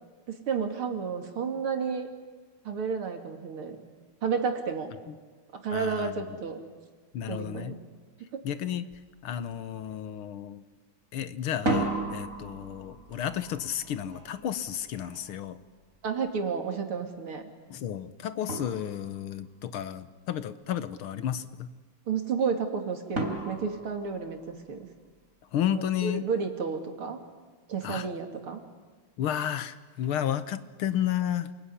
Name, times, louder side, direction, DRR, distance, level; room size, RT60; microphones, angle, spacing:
voice 1, 0.3-2.1 2.7-3.8 4.2-4.9 5.5-6.6 7.3-7.8 16.0-17.4 22.1-24.9 25.7-27.2 27.7-28.6, right 5 dB, 75° right, 5 dB, 3.5 m, -31 dB
voice 2, 5.7-6.3 7.1-7.8 8.4-8.9 9.2-10.6 11.1-15.6 17.7-21.7 25.5-26.2 27.8-28.1 29.2-31.5, left 10 dB, 80° left, 13 dB, 1.9 m, -32 dB
sound 1, 8.9-9.1 9.4-10.0 11.5-16.3 17.9-18.0 18.5-19.4 23.2-24.9, right 2 dB, 35° right, 4.2 m, -35 dB
28.5 x 21.0 x 9.9 m, 1.4 s
omnidirectional pair, 2.4 m